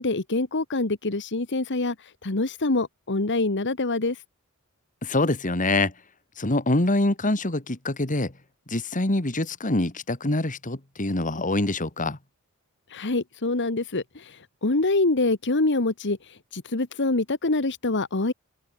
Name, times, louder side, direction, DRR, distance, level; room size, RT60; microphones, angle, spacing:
voice 1, 0.0-4.2 12.9-18.3, left 2 dB, 55° left, 1.5 m, -25 dB
voice 2, 5.0-5.9 6.4-8.3 8.7-12.2, left 2 dB, 35° left, 2.3 m, -25 dB
head